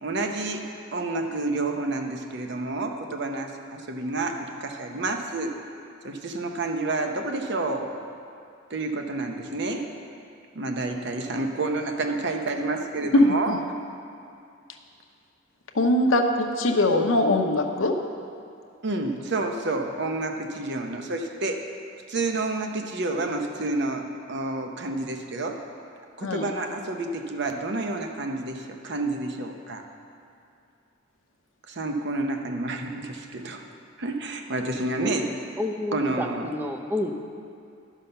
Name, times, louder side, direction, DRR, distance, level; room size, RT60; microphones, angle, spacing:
voice 1, 0.0-5.5 6.0-8.0 8.7-9.9 10.5-13.6 18.8-21.6 22.1-25.6 26.2-29.8 31.7-33.6 34.0-35.3 35.9-36.5, right 2 dB, 60° right, 4 dB, 0.8 m, -29 dB
voice 2, 13.1-13.6 15.7-17.9 26.2-26.4, left 1 dB, 75° left, 4 dB, 0.9 m, -21 dB
voice 3, 35.0-37.1, left 1 dB, 10° right, 3 dB, 0.6 m, -30 dB
11.0 x 5.6 x 6.7 m, 2.5 s
head